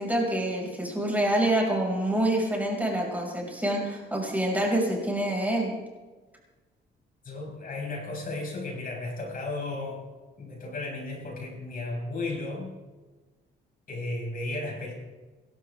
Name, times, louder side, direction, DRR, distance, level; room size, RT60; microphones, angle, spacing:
voice 1, 0.0-5.7, right 1 dB, 10° right, -2 dB, 6.1 m, -26 dB
voice 2, 7.2-10.1 10.4-12.7 13.9-14.9, left 2 dB, 45° left, 0 dB, 6.2 m, -34 dB
27.5 x 13.0 x 3.6 m, 1.3 s
cardioid pair, 90°, 20 cm